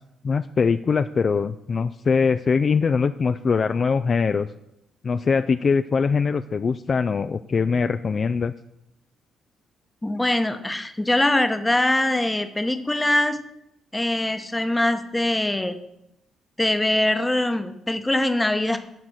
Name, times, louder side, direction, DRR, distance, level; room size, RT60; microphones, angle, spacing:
voice 1, 0.2-4.5 5.0-8.5, left 5 dB, 40° left, 11 dB, 0.3 m, -22 dB
voice 2, 10.0-13.4 13.9-15.8 16.6-18.8, left 1 dB, 10° left, 8 dB, 0.9 m, -22 dB
10.5 x 4.2 x 7.8 m, 0.82 s
cardioid pair, 90°, 0 cm